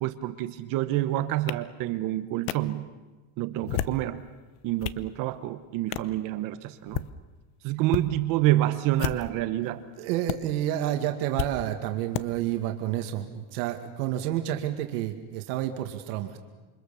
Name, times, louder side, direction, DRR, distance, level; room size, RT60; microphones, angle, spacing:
voice 1, 0.0-2.9 3.4-4.2 4.6-7.0 7.6-9.8, right 15 dB, 45° right, 10 dB, 1.1 m, -28 dB
sound 1, 1.5-1.6 2.5-2.6 3.5-4.0 4.6-5.0 5.9-6.1 6.8-7.1 7.9-8.1 8.9-9.4 10.3-10.4 11.4-11.5 12.1-12.3, left 13 dB, 50° left, 0.9 m, -31 dB
voice 2, 10.0-16.4, right 12 dB, 70° right, 5 dB, 2.2 m, -30 dB
28.0 x 24.5 x 7.0 m, 1.2 s
cardioid pair, 175°, 46 cm